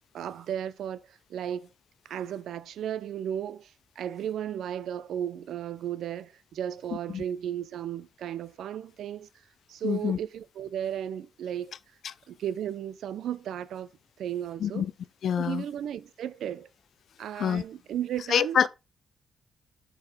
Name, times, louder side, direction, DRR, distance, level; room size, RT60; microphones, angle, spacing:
voice 1, 0.1-1.7 2.0-9.3 9.7-11.8 12.3-13.9 14.2-14.9 15.4-16.7 17.2-18.7, right 10 dB, 80° right, 0.5 m, -34 dB
voice 2, 9.8-10.2 14.6-14.9 15.2-15.6 17.4-17.6 18.3-18.7, left 8 dB, 65° left, 0.5 m, -26 dB
7.2 x 3.9 x 4.9 m
cardioid pair, 125°, 0 cm